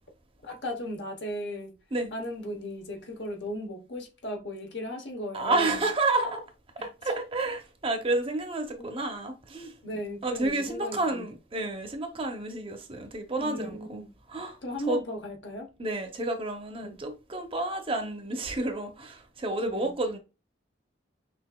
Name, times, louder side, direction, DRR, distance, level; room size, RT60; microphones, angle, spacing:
voice 1, 0.4-1.8 2.1-5.8 6.8-6.9 8.8-9.0 9.8-11.3 13.4-14.1 14.6-15.7 16.8-17.0 19.6-19.9, equal, 70° left, 1.0 m, -36 dB
voice 2, 5.3-6.4 6.8-9.7 10.2-14.0 14.3-14.6 14.9-15.0 15.8-20.2, right 2 dB, 30° right, 0.6 m, -30 dB
5.9 x 2.5 x 2.3 m
head